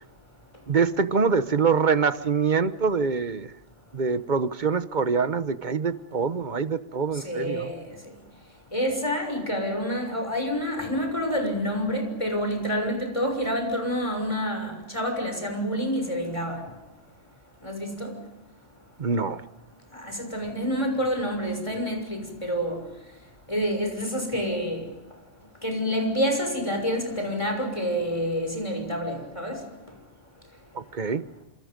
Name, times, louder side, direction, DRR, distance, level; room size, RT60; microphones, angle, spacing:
voice 1, 0.7-3.5 3.9-7.7 19.0-19.4 30.7-31.2, right 5 dB, 40° right, 1.1 m, -25 dB
voice 2, 7.1-7.9 8.7-16.6 17.6-18.1 19.9-22.8 23.5-24.9 25.6-29.6, equal, 25° left, 6.3 m, -28 dB
29.0 x 27.5 x 5.3 m
omnidirectional pair, 1.3 m